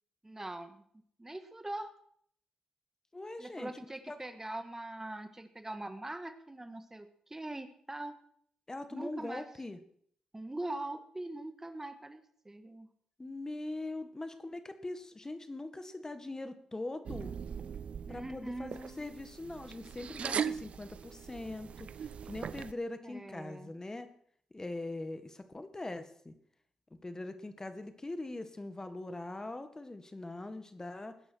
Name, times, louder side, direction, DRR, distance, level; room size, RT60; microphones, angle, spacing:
voice 1, 0.2-0.8 1.2-1.9 3.4-8.2 8.9-9.5 10.3-12.9 18.1-19.3 23.0-23.7, right 2 dB, 20° right, 9 dB, 1.7 m, -42 dB
voice 2, 3.1-3.7 4.1-4.2 8.7-9.8 13.2-17.3 18.1-24.1 24.5-26.3 27.0-31.2, left 2 dB, 25° left, 9 dB, 1.8 m, -42 dB
sound 1, 17.0-22.7, right 7 dB, 60° right, 0.5 m, -40 dB
20.0 x 11.0 x 4.7 m, 0.63 s
supercardioid pair, 45°, 2 cm